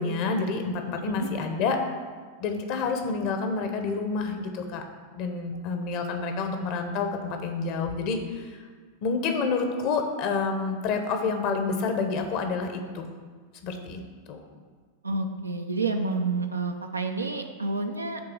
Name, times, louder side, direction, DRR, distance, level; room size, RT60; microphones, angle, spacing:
voice 1, 0.0-1.8 2.4-4.8 5.1-8.5 9.0-13.1 13.6-14.0 14.3-14.4, left 4 dB, 45° left, 5 dB, 1.2 m, -28 dB
voice 2, 15.0-18.2, right 3 dB, 80° right, 4 dB, 0.8 m, -29 dB
10.5 x 3.8 x 6.8 m, 1.5 s
figure-of-eight pair, 90°, 0 cm